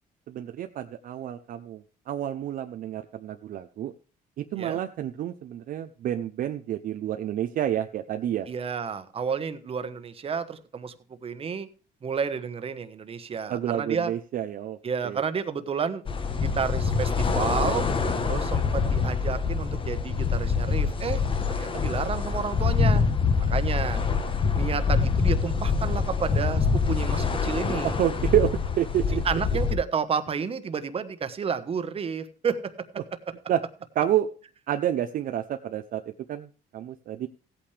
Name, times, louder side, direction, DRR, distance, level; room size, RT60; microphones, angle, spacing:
voice 1, 0.3-3.9 4.4-8.5 13.5-14.8 15.0-15.2 27.8-29.2 33.5-33.6 34.0-34.3 34.7-36.0 36.3-36.5 36.7-37.3, right 11 dB, 55° right, 7 dB, 0.6 m, -29 dB
voice 2, 8.5-10.9 11.2-11.7 12.0-14.1 14.8-16.0 16.4-17.8 18.2-23.0 23.5-24.0 24.6-28.0 29.2-32.7, right 6 dB, 35° right, 10 dB, 1.2 m, -31 dB
sound 1, 16.1-29.8, left 5 dB, 30° left, 1.2 m, -25 dB
16.0 x 8.7 x 3.3 m, 0.38 s
cardioid pair, 110°, 17 cm